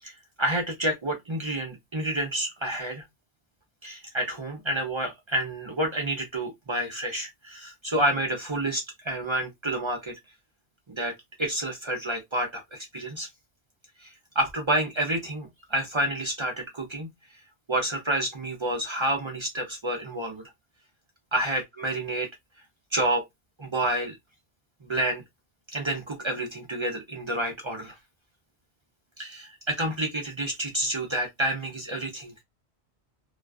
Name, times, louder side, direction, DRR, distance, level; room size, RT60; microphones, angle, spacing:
voice 1, 0.0-3.0 3.8-10.1 10.9-11.1 11.4-13.3 14.0-17.1 17.7-20.4 21.3-22.3 22.9-23.2 23.6-24.2 24.8-25.2 25.7-28.0 29.2-32.3, right 1 dB, 40° right, 0.4 m, -29 dB
2.3 x 2.2 x 2.3 m
omnidirectional pair, 1.1 m